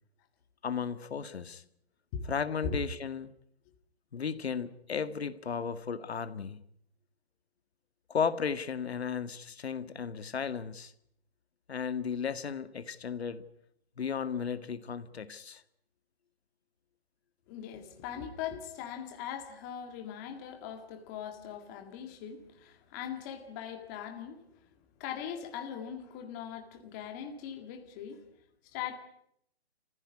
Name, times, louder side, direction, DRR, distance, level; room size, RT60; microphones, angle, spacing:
voice 1, 0.6-1.6 2.2-3.3 4.1-6.6 8.1-10.9 11.7-13.4 14.0-15.6, left 6 dB, 90° left, 1.9 m, -34 dB
voice 2, 17.5-24.7 25.0-28.2 28.7-29.0, left 8 dB, 15° left, 1.9 m, -40 dB
27.5 x 15.5 x 9.7 m
hypercardioid pair, 175°, 31 cm